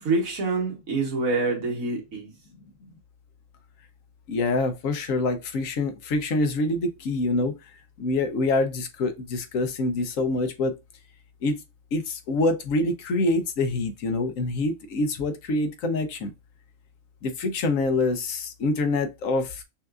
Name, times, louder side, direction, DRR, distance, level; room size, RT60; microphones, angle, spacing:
voice 1, 0.0-2.3, right 3 dB, 80° right, 1.7 m, -26 dB
voice 2, 4.3-7.5 8.0-10.7 11.4-11.6 11.9-16.3 17.2-19.6, left 2 dB, 75° left, 1.1 m, -25 dB
5.6 x 2.5 x 2.3 m
omnidirectional pair, 1.4 m